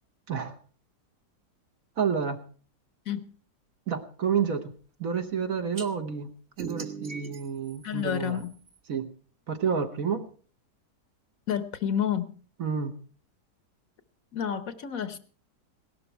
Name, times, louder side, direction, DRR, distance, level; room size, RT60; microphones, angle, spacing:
voice 1, 2.0-2.4 3.9-4.7 5.0-8.4 8.9-9.1 9.5-10.3 12.6-12.9, right 6 dB, 60° right, 7 dB, 1.6 m, -29 dB
sound 1, 5.8-5.9 6.6-8.8, right 6 dB, 40° right, 1.5 m, -40 dB
voice 2, 7.8-8.6 11.5-12.4 14.3-15.2, left 9 dB, 60° left, 12 dB, 1.2 m, -30 dB
17.5 x 12.5 x 4.5 m, 0.41 s
omnidirectional pair, 1.8 m